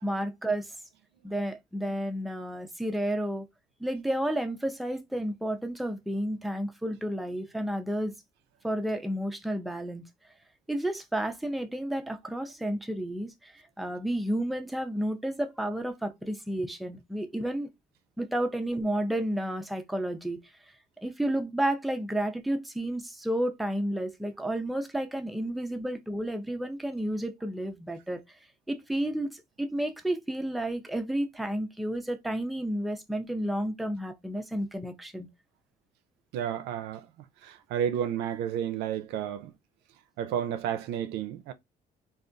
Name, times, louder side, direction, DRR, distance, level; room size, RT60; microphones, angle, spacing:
voice 1, 0.0-0.8 1.2-3.5 3.8-8.1 8.6-10.0 10.7-17.7 18.2-20.4 21.0-28.4 28.7-35.3, right 1 dB, ahead, 0.4 m, -31 dB
voice 2, 36.3-37.1 37.4-39.5 40.2-41.5, right 9 dB, 85° right, 0.4 m, -31 dB
3.3 x 2.2 x 2.5 m
cardioid pair, 110°, 17 cm